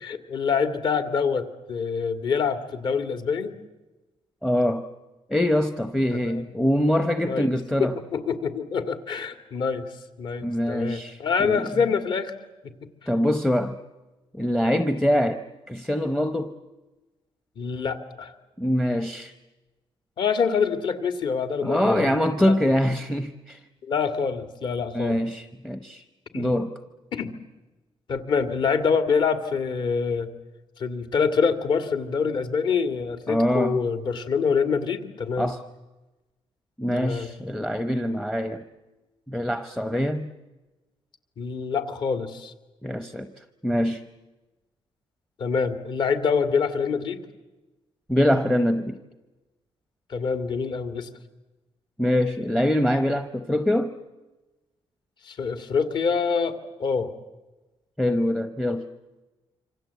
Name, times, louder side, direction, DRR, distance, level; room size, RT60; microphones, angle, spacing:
voice 1, 0.0-3.5 6.3-6.4 7.2-7.5 8.1-9.8 10.2-12.3 14.6-14.8 17.6-18.3 20.2-22.1 22.5-22.6 23.8-25.2 26.3-26.5 27.1-27.3 28.1-30.3 30.8-35.5 36.9-37.3 41.4-42.5 45.4-47.2 50.1-51.1 55.2-57.1, left 5 dB, 50° left, 9 dB, 2.2 m, -26 dB
voice 2, 4.4-4.9 5.3-8.0 10.4-11.7 13.1-13.8 14.3-16.5 18.6-19.3 21.6-23.6 24.9-26.0 26.3-26.8 33.3-33.8 35.4-35.6 36.8-38.6 39.3-40.3 42.8-44.0 48.1-49.0 52.0-53.9 58.0-58.9, equal, 5° left, 10 dB, 0.8 m, -24 dB
27.0 x 25.5 x 8.2 m, 1.1 s
cardioid pair, 180°, 10 cm